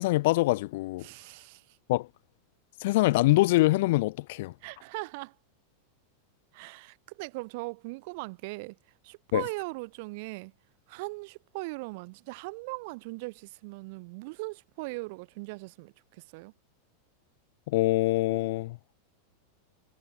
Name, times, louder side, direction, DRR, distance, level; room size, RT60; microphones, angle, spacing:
voice 1, 0.0-1.0 1.9-2.1 2.8-4.5 9.3-9.4 17.7-18.8, left 19 dB, 55° left, 1.0 m, -24 dB
voice 2, 1.0-1.8 4.6-5.4 6.5-10.5 10.9-16.5, right 26 dB, 55° right, 6.3 m, -39 dB
figure-of-eight pair, 90°, 0 cm